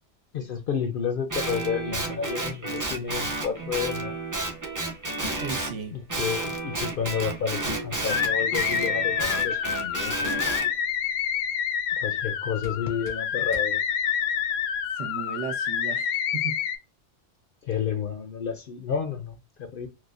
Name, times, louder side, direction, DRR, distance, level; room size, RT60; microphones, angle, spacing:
voice 1, 0.3-4.1 5.9-10.4 12.0-13.8 17.6-19.9, left 7 dB, 60° left, 0.6 m, -31 dB
Guitar, 1.3-5.8 6.1-10.7, right 2 dB, 20° right, 0.5 m, -31 dB
sound 1, 3.5-14.8, right 1 dB, 50° right, 1.7 m, -47 dB
voice 2, 5.4-6.0 14.9-16.6, right 6 dB, 75° right, 1.1 m, -35 dB
sound 2, 8.1-16.8, left 8 dB, 80° left, 0.9 m, -27 dB
4.7 x 2.2 x 2.4 m
omnidirectional pair, 1.3 m